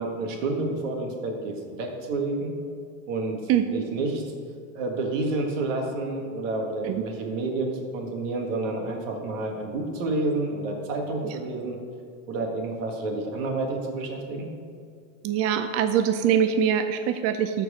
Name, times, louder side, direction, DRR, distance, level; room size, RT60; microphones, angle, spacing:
voice 1, 0.0-2.5 3.1-3.4 3.7-4.2 4.7-11.8 12.3-14.5, right 2 dB, 85° right, 2 dB, 1.8 m, -29 dB
voice 2, 3.5-3.8 6.8-7.1 11.2-11.4 15.2-17.6, right 8 dB, 40° right, 8 dB, 0.5 m, -23 dB
13.5 x 4.6 x 5.0 m, 2.2 s
supercardioid pair, 130°, 38 cm